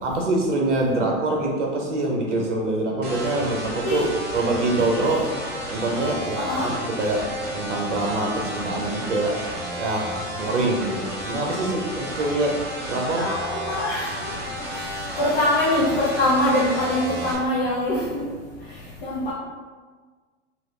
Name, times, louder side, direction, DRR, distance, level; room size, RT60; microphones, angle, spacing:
voice 1, 0.0-4.1 4.3-5.3 5.7-7.2 7.5-9.3 9.8-12.6 12.9-13.3, right 2 dB, 80° right, 0 dB, 0.7 m, -24 dB
sound 1, 3.0-17.3, equal, 25° right, 0.9 m, -32 dB
voice 2, 6.3-6.7 11.2-11.3 13.2-19.3, left 1 dB, 45° left, -7 dB, 0.7 m, -24 dB
2.8 x 2.4 x 3.1 m, 1.5 s
hypercardioid pair, 100°, 36 cm